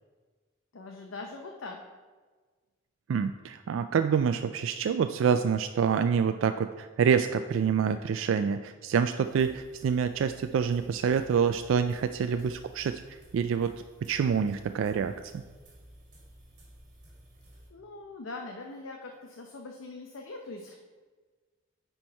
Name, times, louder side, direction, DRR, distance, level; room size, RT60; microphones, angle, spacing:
voice 1, 0.7-1.8 17.7-20.8, left 3 dB, 80° left, 2 dB, 0.7 m, -42 dB
voice 2, 3.1-13.0 13.3-13.7 14.0-15.4, right 7 dB, 75° right, 9 dB, 0.3 m, -27 dB
sound 1, 9.2-17.7, right 1 dB, 40° right, 1.9 m, -54 dB
9.7 x 4.5 x 4.5 m, 1.4 s
head